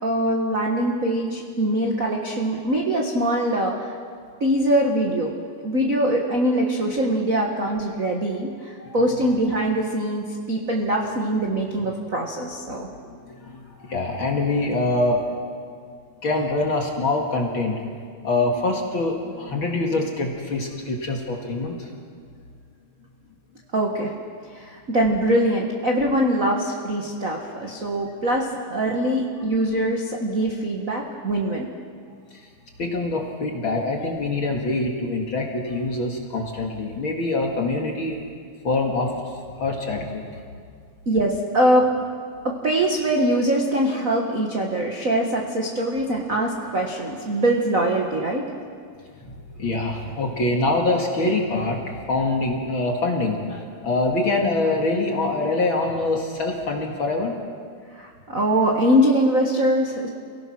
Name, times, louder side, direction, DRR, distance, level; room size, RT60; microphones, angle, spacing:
voice 1, 0.0-3.9 4.4-5.3 5.6-12.9 23.7-24.1 24.5-31.6 41.0-41.9 42.4-48.4 57.9-60.1, right 1 dB, 65° right, 0 dB, 0.8 m, -23 dB
voice 2, 12.7-15.2 16.2-17.8 18.2-21.9 32.3-32.4 32.8-38.2 38.6-40.4 49.2-57.4, left 2 dB, 40° left, 1 dB, 2.1 m, -25 dB
28.0 x 17.0 x 6.0 m, 2.1 s
omnidirectional pair, 4.2 m